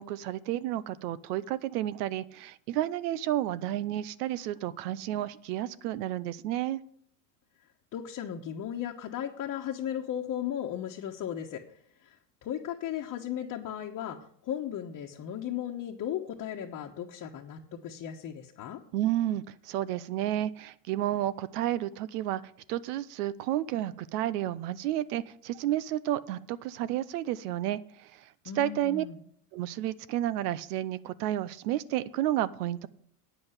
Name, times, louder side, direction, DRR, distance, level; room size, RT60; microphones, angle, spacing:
voice 1, 0.0-6.8 18.9-22.4 22.7-29.0 29.5-32.9, right 13 dB, 75° right, 18 dB, 0.7 m, -31 dB
voice 2, 7.9-18.8 28.4-29.2, left 10 dB, 40° left, 0 dB, 1.2 m, -36 dB
9.1 x 7.6 x 8.0 m, 0.64 s
supercardioid pair, 105°, 47 cm